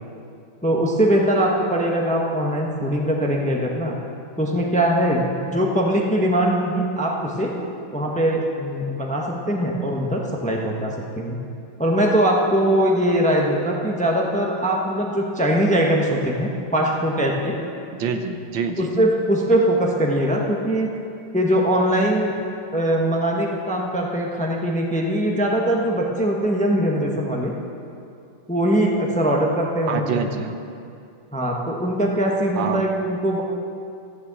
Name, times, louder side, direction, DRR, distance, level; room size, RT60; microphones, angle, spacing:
voice 1, 0.6-4.0 4.4-7.6 7.9-11.4 11.8-17.6 18.8-20.9 21.3-22.3 22.7-27.5 28.5-30.2 31.3-33.4, right 1 dB, 10° left, 0 dB, 0.5 m, -21 dB
voice 2, 18.0-19.0 29.8-30.6 32.6-32.9, right 6 dB, 70° right, 7 dB, 1.4 m, -26 dB
14.0 x 6.7 x 7.4 m, 2.5 s
omnidirectional pair, 2.3 m